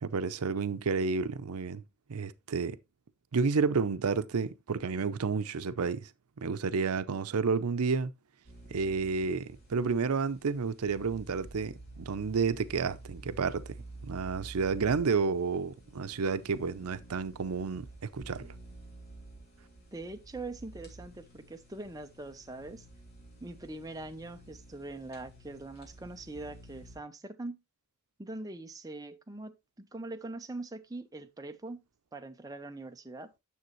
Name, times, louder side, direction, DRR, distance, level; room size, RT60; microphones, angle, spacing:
voice 1, 0.0-1.8 2.1-2.8 3.3-6.1 6.4-8.1 8.7-13.7 14.0-17.9 18.1-18.5, right 5 dB, 90° right, 0.6 m, -30 dB
sound 1, 8.5-27.0, right 2 dB, 45° left, 3.4 m, -50 dB
voice 2, 19.9-22.9 23.4-27.6 28.2-31.8 32.1-33.3, right 2 dB, 15° right, 0.7 m, -42 dB
9.4 x 7.0 x 3.0 m
head